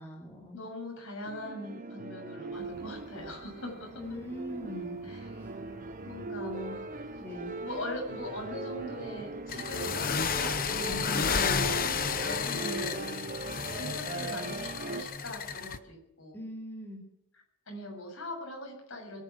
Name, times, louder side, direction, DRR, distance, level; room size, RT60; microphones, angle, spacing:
voice 1, 0.0-0.6 4.0-5.0 5.4-5.5 6.4-6.8 7.2-7.5 10.8-11.7 16.3-17.0, left 1 dB, 10° left, -3 dB, 2.8 m, -41 dB
voice 2, 0.5-4.0 5.0-5.4 6.0-6.5 7.6-13.1 13.8-16.4 17.3-19.2, left 1 dB, 60° left, 1 dB, 7.5 m, -41 dB
sound 1, 1.2-15.0, right 3 dB, 35° right, 1.0 m, -40 dB
sound 2, 2.5-12.9, right 1 dB, 15° right, 1.7 m, -56 dB
sound 3, 9.5-15.8, left 6 dB, 40° left, 0.9 m, -32 dB
22.5 x 10.0 x 6.3 m, 0.78 s
head